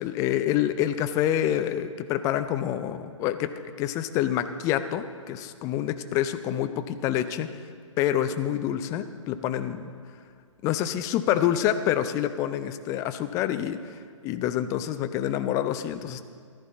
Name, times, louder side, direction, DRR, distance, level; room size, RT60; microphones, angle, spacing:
voice 1, 0.0-3.5 3.8-7.5 8.0-9.9 10.6-16.2, left 11 dB, 20° left, 10 dB, 0.5 m, -27 dB
15.0 x 13.5 x 4.1 m, 2.2 s
figure-of-eight pair, 125°, 17 cm